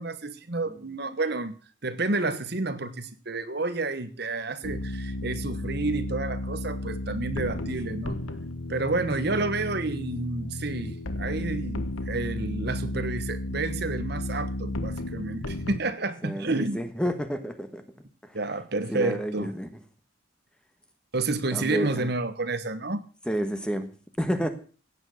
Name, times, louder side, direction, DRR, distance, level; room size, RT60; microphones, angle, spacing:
voice 1, 0.0-1.6 1.8-8.2 8.7-16.8 18.3-19.5 21.1-23.0, right 3 dB, 50° right, 12 dB, 1.1 m, -30 dB
sound 1, 4.6-15.8, left 1 dB, 85° left, 1.3 m, -33 dB
voice 2, 16.2-17.8 18.2-18.3 18.9-19.7 21.5-22.1 23.3-23.9 24.2-24.5, equal, 5° left, 8 dB, 1.4 m, -30 dB
16.0 x 9.1 x 6.3 m, 0.39 s
head